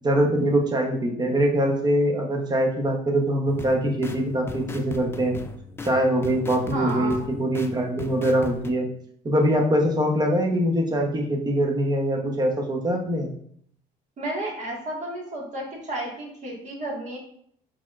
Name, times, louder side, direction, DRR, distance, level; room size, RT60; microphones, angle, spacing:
voice 1, 0.0-5.4 5.8-8.9 9.2-13.3, right 1 dB, 25° right, 2 dB, 0.9 m, -23 dB
sound 1, 3.5-8.7, left 3 dB, 15° left, 0.4 m, -38 dB
voice 2, 6.7-7.1 14.2-17.2, right 1 dB, 45° right, -2 dB, 1.7 m, -32 dB
4.4 x 4.1 x 2.5 m, 0.64 s
cardioid pair, 110°, 17 cm